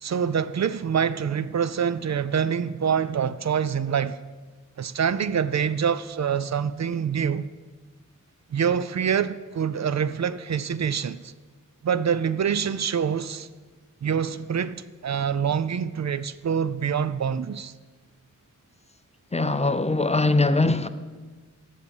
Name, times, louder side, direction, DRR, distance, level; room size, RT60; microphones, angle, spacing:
voice 1, 0.0-4.2 4.8-7.5 8.5-11.3 11.8-13.5 14.0-17.7, right 7 dB, 60° right, 0.4 m, -25 dB
voice 2, 19.3-20.9, left 2 dB, 20° left, 0.5 m, -21 dB
12.0 x 7.4 x 6.5 m
wide cardioid pair, 105°, 31 cm